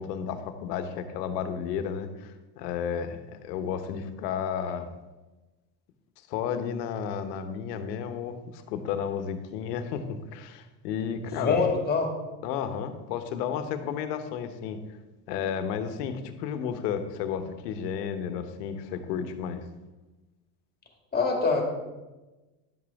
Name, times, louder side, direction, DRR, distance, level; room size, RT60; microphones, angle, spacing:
voice 1, 0.0-4.9 6.3-11.6 12.4-14.8 15.3-19.6, left 7 dB, 80° left, 9 dB, 1.1 m, -32 dB
voice 2, 11.4-12.1 21.1-21.6, left 4 dB, 20° left, 2 dB, 2.2 m, -24 dB
11.0 x 7.6 x 3.6 m, 1.1 s
supercardioid pair, 90°, 48 cm